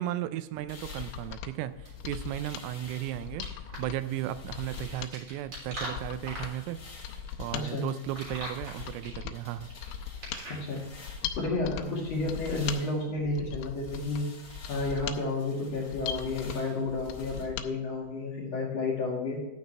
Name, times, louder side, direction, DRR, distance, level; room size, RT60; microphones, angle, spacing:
voice 1, 0.0-9.7, right 13 dB, 85° right, 13 dB, 3.2 m, -35 dB
Mechanisms, 0.6-17.7 18.0-18.1, left 9 dB, 80° left, 3.0 m, -40 dB
sound 1, 0.7-3.3 3.7-5.2 5.6-11.5 11.8-17.4, left 3 dB, 30° left, 2.4 m, -52 dB
sound 2, 2.1-10.9, right 1 dB, 35° right, 4.2 m, -44 dB
voice 2, 7.5-7.9 10.6-10.8 11.4-14.2 14.7-19.4, left 3 dB, 55° left, -3 dB, 1.9 m, -31 dB
11.0 x 9.4 x 3.3 m, 1.1 s
omnidirectional pair, 5.8 m